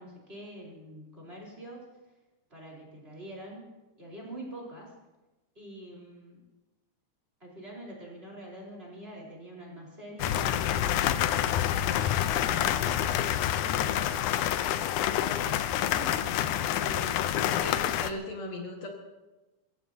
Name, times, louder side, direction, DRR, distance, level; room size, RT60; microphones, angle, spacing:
voice 1, 0.0-1.8 2.5-3.7 3.9-4.9 5.5-6.4 7.4-11.0 12.1-13.0 13.8-14.2 15.2-17.2, right 1 dB, 20° right, -2 dB, 4.5 m, -45 dB
sound 1, 10.2-18.1, left 11 dB, 80° left, 2.2 m, -27 dB
voice 2, 17.0-18.9, left 1 dB, 65° left, 0 dB, 2.9 m, -40 dB
26.0 x 15.5 x 2.8 m, 1.1 s
omnidirectional pair, 3.5 m